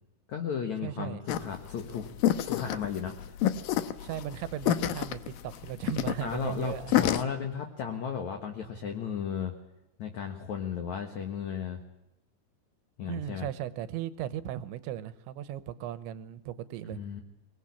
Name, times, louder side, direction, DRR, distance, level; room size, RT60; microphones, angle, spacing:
voice 1, 0.3-2.1 2.4-3.1 6.2-9.6 10.0-11.8 13.0-13.5 16.8-17.2, left 7 dB, 60° left, 4 dB, 2.0 m, -34 dB
voice 2, 0.8-1.2 4.0-6.9 13.1-17.0, right 11 dB, 80° right, 14 dB, 3.2 m, -37 dB
sound 1, 1.3-7.2, left 12 dB, 80° left, 2.1 m, -29 dB
24.0 x 20.0 x 8.5 m, 0.93 s
omnidirectional pair, 5.3 m